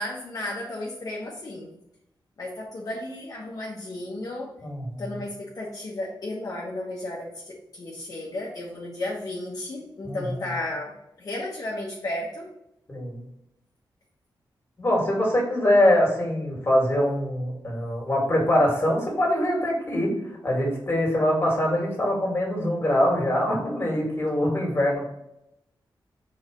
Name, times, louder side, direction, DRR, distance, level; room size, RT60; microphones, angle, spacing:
voice 1, 0.0-1.7 2.4-4.5 5.0-10.9 11.2-12.5, left 1 dB, 50° left, -4 dB, 1.2 m, -33 dB
voice 2, 4.6-5.0 10.0-10.5 12.9-13.3 14.8-20.1 20.4-25.1, left 1 dB, 30° left, -1 dB, 2.3 m, -23 dB
4.7 x 4.2 x 5.3 m, 0.83 s
wide cardioid pair, 115°, 8 cm